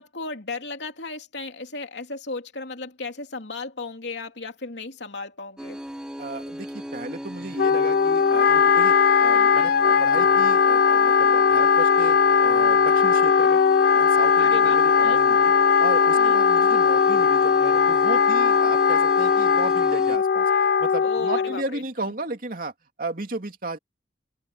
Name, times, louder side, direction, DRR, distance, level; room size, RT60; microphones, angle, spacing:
voice 1, 0.0-5.8 9.3-9.5 14.4-15.2 16.2-16.4 21.0-21.8, left 3 dB, 85° left, 2.9 m, -35 dB
sound 1, 5.6-20.2, equal, 5° right, 0.5 m, -36 dB
voice 2, 6.2-13.6 13.9-15.5 15.8-22.7 23.0-23.8, right 2 dB, 50° right, 2.9 m, -34 dB
Wind instrument woodwind instrument, 7.6-21.6, left 6 dB, 60° left, 0.4 m, -19 dB
head